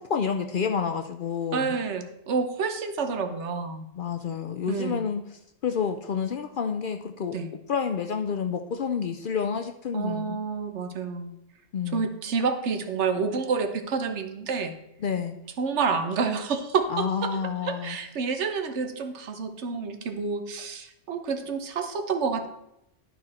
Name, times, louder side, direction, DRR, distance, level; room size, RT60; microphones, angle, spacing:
voice 1, 0.0-1.8 4.0-5.2 5.6-7.4 7.7-10.4 11.7-12.1 15.0-15.4 16.9-18.0, left 6 dB, 60° left, 6 dB, 0.6 m, -29 dB
voice 2, 1.5-3.9 4.7-5.0 7.3-7.5 9.9-11.3 11.9-14.8 15.6-22.5, right 5 dB, 70° right, 7 dB, 1.1 m, -29 dB
11.5 x 4.3 x 4.2 m, 0.84 s
omnidirectional pair, 1.2 m